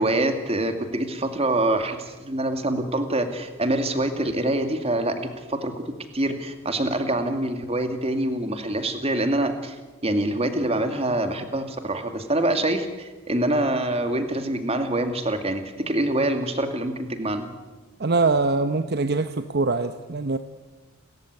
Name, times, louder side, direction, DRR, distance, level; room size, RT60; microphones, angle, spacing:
voice 1, 0.0-5.7 6.1-9.8 10.0-17.5, right 1 dB, 30° right, 7 dB, 2.3 m, -25 dB
voice 2, 18.0-20.4, right 3 dB, 50° right, 9 dB, 0.9 m, -23 dB
29.5 x 14.5 x 9.6 m, 1.2 s
head